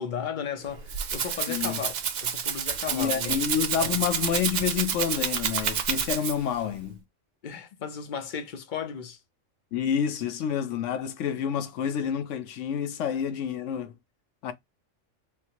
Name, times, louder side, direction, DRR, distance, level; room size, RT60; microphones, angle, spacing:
voice 1, 0.0-1.9 2.2-3.4 3.8-4.0 7.4-9.2, left 7 dB, 50° left, 0.6 m, -35 dB
Rattle (instrument), 0.6-6.6, right 7 dB, 75° right, 0.4 m, -29 dB
voice 2, 1.5-1.8 2.9-7.0 9.7-14.0 14.4-14.5, left 8 dB, 70° left, 1.0 m, -28 dB
3.7 x 2.6 x 2.9 m
omnidirectional pair, 1.3 m